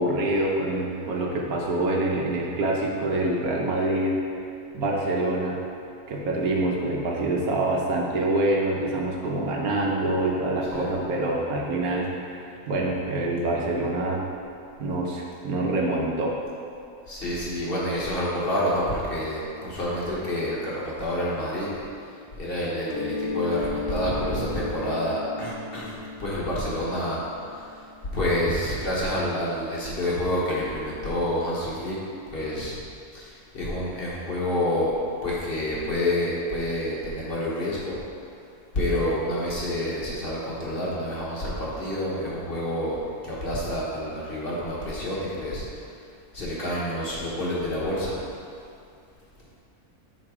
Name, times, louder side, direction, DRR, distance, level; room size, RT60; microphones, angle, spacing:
voice 1, 0.0-4.2 4.7-5.6 6.1-14.3 14.8-16.3, right 2 dB, 75° right, -2 dB, 1.3 m, -26 dB
voice 2, 17.1-21.7 22.4-27.2 27.5-27.8 28.1-32.0 32.3-32.8 33.1-34.9 35.2-38.0 38.7-43.0 43.2-45.7 46.3-48.2, left 1 dB, 40° left, -7 dB, 1.2 m, -28 dB
Mallet percussion, 22.9-28.4, left 4 dB, 80° left, 1.2 m, -35 dB
7.6 x 3.3 x 4.8 m, 2.4 s
omnidirectional pair, 1.6 m